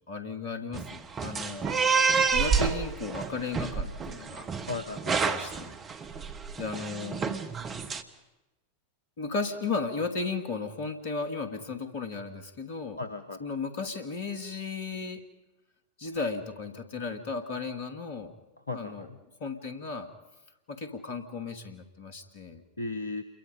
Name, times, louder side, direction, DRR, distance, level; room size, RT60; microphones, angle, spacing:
voice 1, 0.1-1.7 2.3-4.5 5.1-5.8 6.6-7.2 9.2-13.0 13.4-15.2 16.0-18.3 18.7-19.1 19.4-20.1 20.7-22.6, left 4 dB, 55° left, 8 dB, 2.3 m, -35 dB
sound 1, 0.7-8.0, right 5 dB, 25° right, 1.4 m, -29 dB
voice 2, 4.7-5.4 13.0-13.4 18.7-19.2 22.8-23.2, left 3 dB, 75° left, 10 dB, 0.9 m, -36 dB
28.5 x 23.0 x 5.3 m, 1.0 s
figure-of-eight pair, 90°, 0 cm